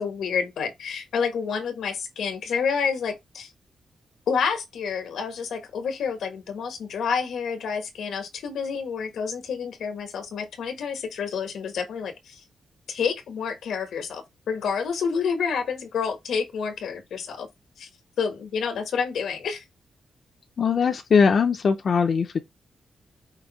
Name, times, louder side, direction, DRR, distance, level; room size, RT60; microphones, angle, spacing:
voice 1, 0.0-3.5 4.3-12.4 12.9-17.5 17.8-17.9 18.2-19.6, left 6 dB, 85° left, 1.2 m, -29 dB
voice 2, 20.6-22.4, left 6 dB, 45° left, 0.5 m, -20 dB
5.1 x 2.6 x 4.0 m
wide cardioid pair, 175°, 0 cm